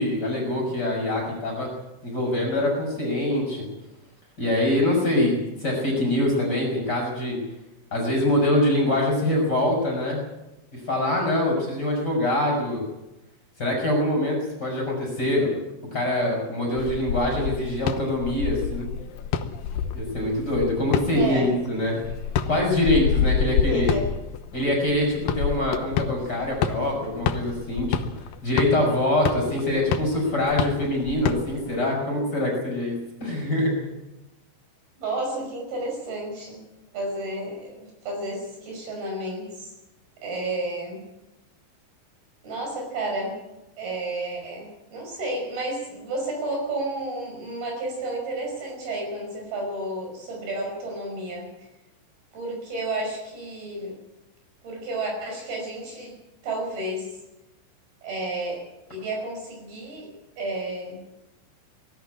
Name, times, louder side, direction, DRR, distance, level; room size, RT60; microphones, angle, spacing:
voice 1, 0.0-1.7 2.0-3.7 4.4-7.4 7.9-10.2 10.7-12.8 13.6-15.5 15.9-18.9 19.9-22.0 22.5-23.9 24.5-27.9 28.4-32.9 33.2-33.9, left 1 dB, 20° left, -1 dB, 6.8 m, -24 dB
sound 1, 16.8-31.7, left 8 dB, 80° left, 2.1 m, -28 dB
voice 2, 21.1-21.5 23.7-24.0 35.0-36.6 36.9-39.7 40.2-41.0 42.4-43.4 43.8-51.5 52.3-54.0 54.6-56.2 56.4-57.1 58.0-58.6 58.9-60.1 60.4-61.0, right 2 dB, 55° right, 1 dB, 7.4 m, -31 dB
20.0 x 14.0 x 10.0 m, 0.94 s
omnidirectional pair, 5.5 m